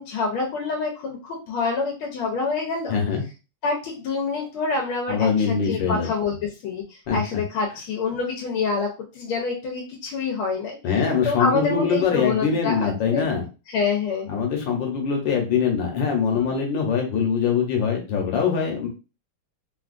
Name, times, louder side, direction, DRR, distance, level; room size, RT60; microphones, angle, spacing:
voice 1, 0.0-3.0 3.6-6.3 6.6-10.8 11.2-13.3 13.7-14.3 16.3-16.5, left 4 dB, 85° left, 0 dB, 1.5 m, -27 dB
voice 2, 2.9-3.2 5.1-6.1 7.1-7.2 10.8-13.4 14.3-18.9, left 6 dB, 70° left, 1 dB, 1.5 m, -23 dB
3.7 x 2.3 x 2.5 m, 0.31 s
omnidirectional pair, 2.3 m